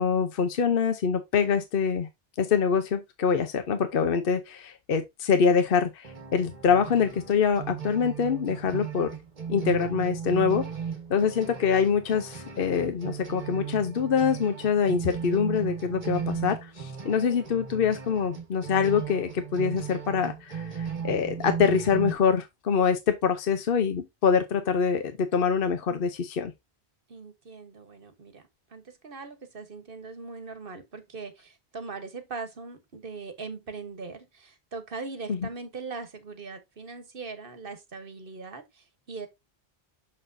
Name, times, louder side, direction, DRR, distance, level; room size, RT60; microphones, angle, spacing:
voice 1, 0.0-2.1 2.4-9.1 9.5-10.7 11.1-26.5 35.3-35.4, left 6 dB, 65° left, 1.0 m, -25 dB
sound 1, 6.0-22.1, right 7 dB, 40° right, 1.3 m, -36 dB
voice 2, 27.1-39.3, right 4 dB, 60° right, 1.3 m, -40 dB
6.5 x 5.9 x 2.6 m
omnidirectional pair, 1.0 m